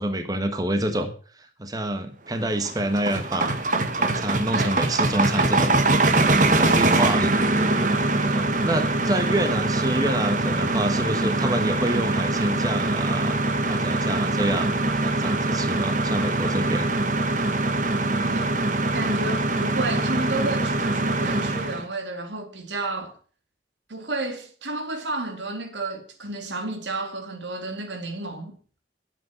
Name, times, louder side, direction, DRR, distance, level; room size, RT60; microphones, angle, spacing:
voice 1, 0.0-3.6 4.0-5.8 6.1-7.4 8.3-13.4 13.7-14.7 15.0-16.9, right 1 dB, 20° right, 1.3 m, -27 dB
sound 1, 2.4-21.8, right 2 dB, 45° right, 1.3 m, -23 dB
voice 2, 6.6-7.1 8.2-8.5 18.2-18.5 18.9-23.2 23.9-28.6, right 2 dB, 85° right, 2.5 m, -32 dB
12.0 x 8.3 x 7.1 m
head